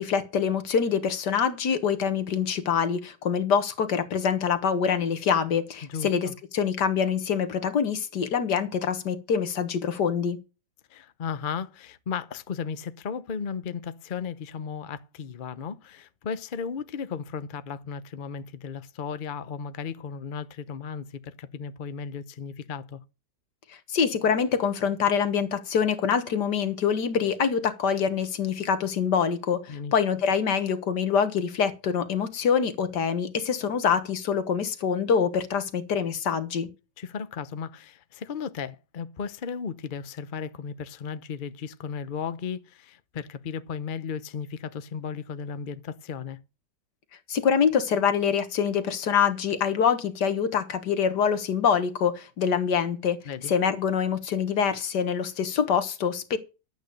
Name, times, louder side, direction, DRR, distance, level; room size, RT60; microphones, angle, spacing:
voice 1, 0.0-10.4 23.9-36.7 47.3-53.2 53.5-56.4, left 7 dB, 70° left, 1.9 m, -25 dB
voice 2, 5.8-6.3 10.9-23.0 29.7-29.9 37.0-46.4 53.2-53.5, left 6 dB, 45° left, 0.7 m, -35 dB
12.0 x 8.5 x 6.6 m
omnidirectional pair, 1.9 m